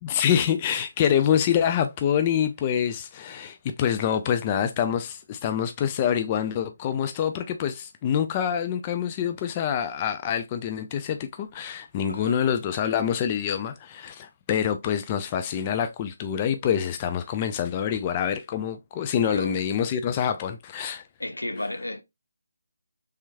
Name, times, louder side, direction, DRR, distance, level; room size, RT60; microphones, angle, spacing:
voice 1, 0.0-21.0, left 8 dB, 25° left, 0.3 m, -26 dB
voice 2, 12.1-12.4 19.2-19.6 21.2-22.0, left 1 dB, 80° left, 0.6 m, -33 dB
3.3 x 3.0 x 2.2 m
figure-of-eight pair, 150°, 0 cm